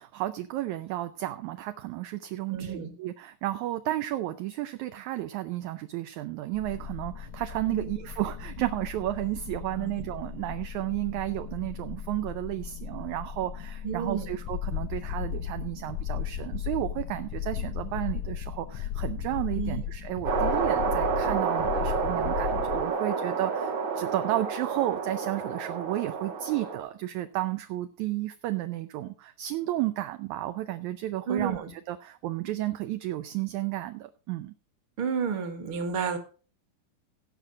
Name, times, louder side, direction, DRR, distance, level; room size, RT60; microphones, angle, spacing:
voice 1, 0.0-34.5, right 15 dB, 75° right, 10 dB, 1.8 m, -32 dB
voice 2, 2.5-2.9 7.7-7.9 9.8-10.0 13.8-14.3 19.5-19.8 31.3-31.7 35.0-36.2, right 6 dB, 45° right, 7 dB, 2.2 m, -31 dB
sound 1, 6.5-20.4, left 7 dB, 50° left, 1.3 m, -41 dB
sound 2, 14.5-22.9, left 10 dB, 75° left, 1.9 m, -34 dB
sound 3, 20.3-26.8, right 5 dB, 60° right, 2.1 m, -29 dB
16.5 x 6.0 x 5.2 m, 0.38 s
omnidirectional pair, 3.8 m